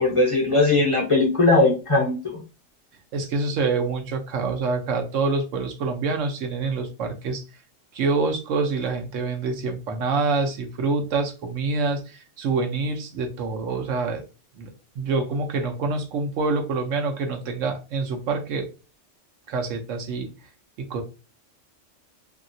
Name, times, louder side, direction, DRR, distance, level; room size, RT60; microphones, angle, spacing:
voice 1, 0.0-2.4, left 2 dB, 35° left, 0 dB, 0.6 m, -19 dB
voice 2, 3.1-7.4 7.9-14.2 14.6-14.7 15.0-18.7 19.5-20.3 20.8-21.0, right 4 dB, 80° right, 4 dB, 1.0 m, -26 dB
2.8 x 2.8 x 2.6 m, 0.31 s
omnidirectional pair, 1.3 m